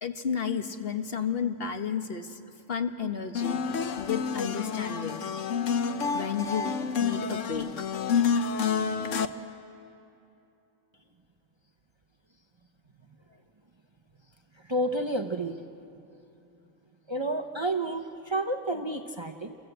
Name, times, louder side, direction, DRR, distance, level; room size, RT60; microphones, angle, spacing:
voice 1, 0.0-2.4 2.7-3.6 3.9-5.2 6.1-7.7, left 7 dB, 45° left, 7 dB, 1.4 m, -32 dB
sound 1, 3.3-9.3, left 6 dB, 65° left, 1.2 m, -29 dB
voice 2, 14.7-15.6 17.1-19.6, right 1 dB, 25° right, 5 dB, 0.8 m, -30 dB
28.0 x 23.0 x 8.1 m, 2.8 s
omnidirectional pair, 1.4 m